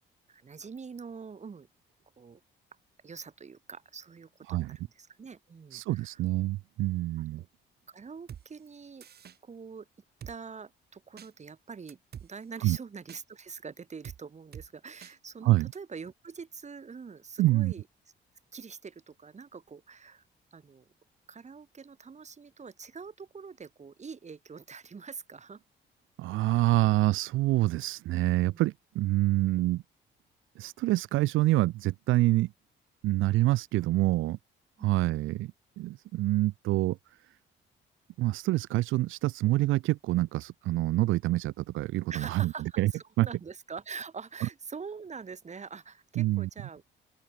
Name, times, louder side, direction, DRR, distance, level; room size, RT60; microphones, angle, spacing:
voice 1, 0.3-1.7 2.2-2.4 3.0-6.2 7.3-7.5 7.9-9.1 9.4-9.9 10.3-17.8 18.5-20.2 20.5-20.9 21.3-25.6 28.5-28.6 34.8-34.9 42.1-46.8, right 5 dB, 35° right, 2.9 m, -44 dB
voice 2, 5.7-7.4 12.6-12.8 15.4-15.7 17.4-17.7 26.2-29.8 30.6-32.5 33.0-34.4 34.8-35.5 35.8-37.0 38.2-42.9 43.2-43.3 46.2-46.5, right 17 dB, 80° right, 0.5 m, -26 dB
Drum kit, 8.3-8.4 9.0-9.4 10.2-10.4 11.2-11.3 11.9-12.3 13.1-13.2 14.0-14.2 14.5-14.7 15.0-15.1 15.7-15.8, right 9 dB, 55° right, 1.5 m, -45 dB
open air
cardioid pair, 90°, 20 cm